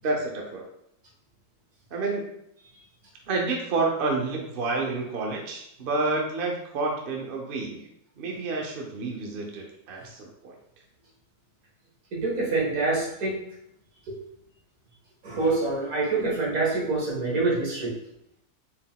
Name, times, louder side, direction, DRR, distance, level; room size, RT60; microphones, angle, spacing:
voice 1, 0.0-0.7 1.9-2.3 3.3-7.9 8.2-10.5, right 3 dB, 50° right, 0 dB, 0.7 m, -29 dB
voice 2, 12.1-13.4 14.1-14.2 15.2-18.0, right 3 dB, 70° right, -5 dB, 1.8 m, -26 dB
4.3 x 3.7 x 2.3 m, 0.76 s
omnidirectional pair, 1.6 m